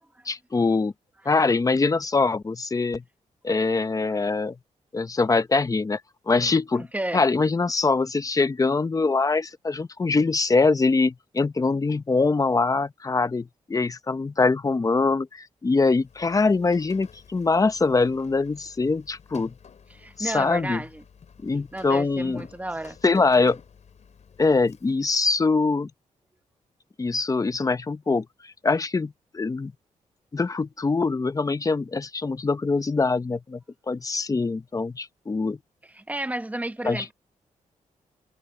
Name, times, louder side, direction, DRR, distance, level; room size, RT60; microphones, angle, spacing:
voice 1, 0.3-0.9 1.2-3.0 3.4-4.5 4.9-6.0 6.3-6.9 7.1-19.5 20.2-20.8 21.4-22.5 23.0-23.6 24.4-25.9 27.0-29.7 30.3-33.6 33.9-35.6 36.8-37.1, left 3 dB, 25° left, 0.8 m, -23 dB
Rain, 15.9-25.2, left 6 dB, 60° left, 5.5 m, -52 dB
voice 2, 19.9-21.0 21.7-23.0 35.9-37.1, right 1 dB, 10° right, 1.0 m, -32 dB
cardioid pair, 105°, 13 cm